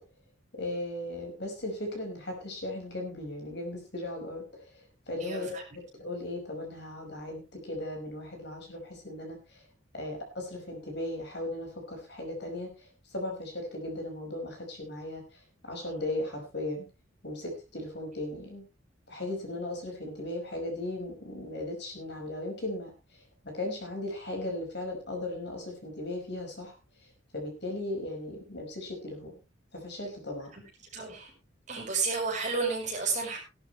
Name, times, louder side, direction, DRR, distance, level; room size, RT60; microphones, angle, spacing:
voice 1, 0.5-5.6 5.9-9.6 9.9-16.9 17.2-18.6 19.1-26.7 27.3-29.4 29.7-30.5, left 1 dB, 55° left, 2 dB, 5.5 m, -37 dB
voice 2, 5.2-5.6 30.9-31.3 31.7-33.4, right 4 dB, 35° right, 0 dB, 6.1 m, -31 dB
17.5 x 12.0 x 3.2 m, 0.29 s
head